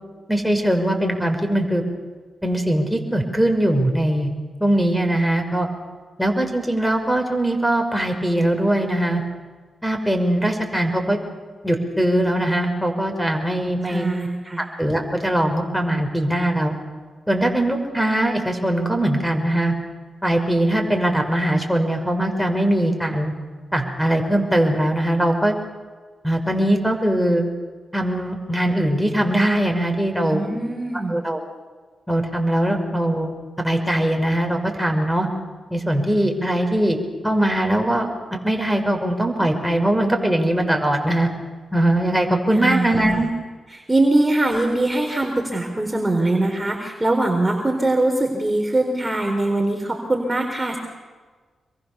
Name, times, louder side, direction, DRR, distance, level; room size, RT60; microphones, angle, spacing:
voice 1, 0.3-1.8 2.4-4.3 4.6-5.7 6.2-9.2 9.8-11.2 11.6-14.1 14.8-16.7 17.3-19.7 20.2-23.3 23.7-25.6 26.2-27.4 27.9-30.4 31.1-31.4 32.1-33.3 33.6-35.3 35.7-37.0 37.2-41.3 41.7-43.3, right 1 dB, ahead, 3 dB, 5.8 m, -21 dB
voice 2, 13.9-14.6 30.3-31.2 42.5-43.3 43.7-50.8, right 2 dB, 20° right, 2 dB, 4.3 m, -22 dB
27.0 x 22.5 x 7.0 m, 1.4 s
supercardioid pair, 45°, 0 cm